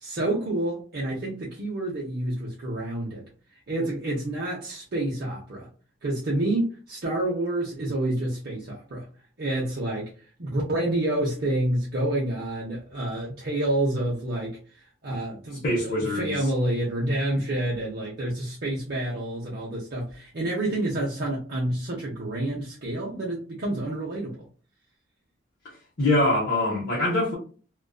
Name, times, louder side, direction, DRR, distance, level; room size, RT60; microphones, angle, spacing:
voice 1, 0.0-3.3 3.7-5.7 6.0-9.0 9.4-10.1 10.4-24.4, right 1 dB, 55° right, 0.6 m, -28 dB
voice 2, 15.6-16.4 26.0-27.4, left 1 dB, 50° left, 0.7 m, -23 dB
2.5 x 2.2 x 2.2 m
head